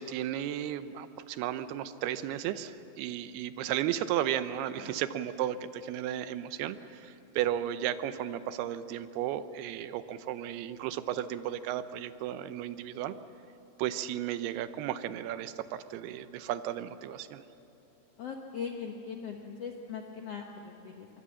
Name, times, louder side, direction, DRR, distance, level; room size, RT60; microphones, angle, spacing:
voice 1, 0.0-13.2 13.8-17.4, right 11 dB, 80° right, 12 dB, 2.7 m, -34 dB
voice 2, 18.2-21.1, left 6 dB, 90° left, 2 dB, 1.3 m, -40 dB
24.0 x 23.5 x 7.5 m, 2.9 s
omnidirectional pair, 4.7 m